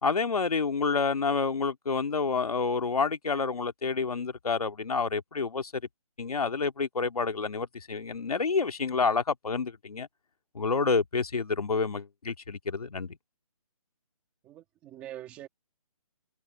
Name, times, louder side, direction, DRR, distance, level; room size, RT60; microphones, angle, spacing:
voice 1, 0.0-5.8 6.2-10.1 10.5-13.2, left 4 dB, 85° left, 2.3 m, -28 dB
voice 2, 14.4-15.5, right 13 dB, 5° right, 1.9 m, -44 dB
hypercardioid pair, 180°, 19 cm